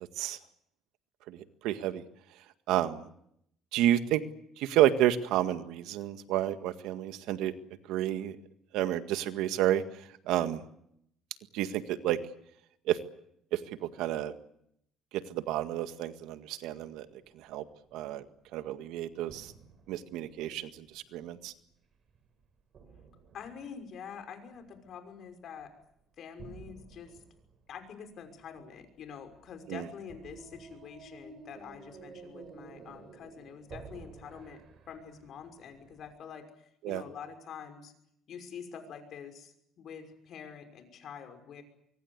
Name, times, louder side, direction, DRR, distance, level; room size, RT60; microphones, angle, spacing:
voice 1, 1.3-2.0 2.7-3.1 3.7-4.2 4.6-7.5 7.9-8.4 8.7-9.8 10.3-10.6 11.5-12.2 12.9-13.0 13.5-14.3 15.1-17.1 17.4-17.6 17.9-18.2 18.5-19.5 19.9-21.5 29.7-29.8 36.8-37.0, right 12 dB, 80° right, 10 dB, 1.8 m, -30 dB
sound 1, 16.8-17.2 17.6-18.7 19.2-21.5 22.1-24.2 24.5-25.3 25.6-26.0 26.4-36.2, right 4 dB, 45° right, 5.8 m, -52 dB
voice 2, 23.3-25.7 26.2-27.2 27.7-34.6 34.9-37.9 38.3-41.6, left 7 dB, 55° left, 8 dB, 5.9 m, -46 dB
24.5 x 24.0 x 8.2 m, 0.74 s
cardioid pair, 125°, 0 cm